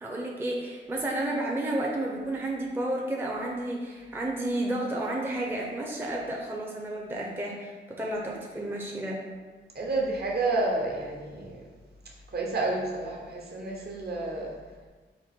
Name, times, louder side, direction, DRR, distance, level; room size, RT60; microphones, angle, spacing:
voice 1, 0.0-9.2, right 1 dB, 10° right, -2 dB, 0.5 m, -31 dB
voice 2, 9.7-11.6 12.3-14.5, right 2 dB, 55° right, -2 dB, 0.9 m, -30 dB
4.3 x 2.5 x 4.2 m, 1.4 s
wide cardioid pair, 110°, 20 cm